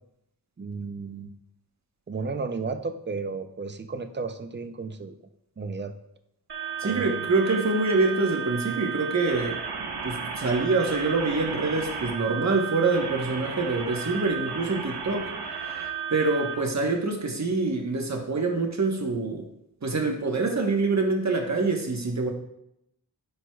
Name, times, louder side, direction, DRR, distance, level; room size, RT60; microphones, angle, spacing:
voice 1, 0.6-1.3 2.1-5.1 5.6-5.9 6.8-7.3, right 4 dB, 30° right, 8 dB, 0.5 m, -33 dB
sound 1, 6.5-16.5, right 6 dB, 80° right, 0.8 m, -33 dB
voice 2, 6.8-9.6 10.0-15.3 15.6-15.7 16.1-19.4 19.8-22.3, right 3 dB, 45° right, 2 dB, 1.2 m, -25 dB
10.0 x 4.7 x 2.3 m, 0.80 s
wide cardioid pair, 65°, 39 cm